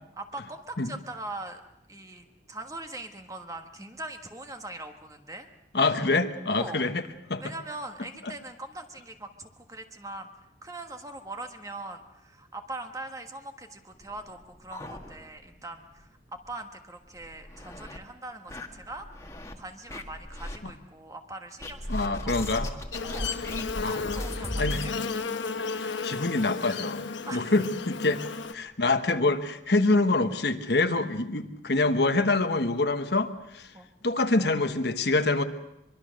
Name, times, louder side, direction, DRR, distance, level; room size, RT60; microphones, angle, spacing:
voice 1, 0.2-1.6 1.9-5.5 6.5-6.8 7.4-10.3 10.6-19.1 19.6-23.4 23.8-24.9 27.3-27.5 33.7-33.9, right 2 dB, 20° right, 5 dB, 1.5 m, -41 dB
voice 2, 5.7-7.5 8.2-8.3 20.6-20.7 21.9-22.7 23.8-24.0 24.6-24.8 25.6-27.0 27.3-28.2 28.5-33.7 34.0-35.4, left 2 dB, 65° left, 8 dB, 1.2 m, -26 dB
sound 1, 14.0-15.6 15.9-16.0 16.4-16.5 17.1-18.0 18.5-19.5 19.9-20.6 21.6-24.9, left 1 dB, 15° left, 1.7 m, -37 dB
Buzz, 22.9-28.5, left 4 dB, 85° left, 1.1 m, -33 dB
24.0 x 23.5 x 6.5 m, 0.86 s
head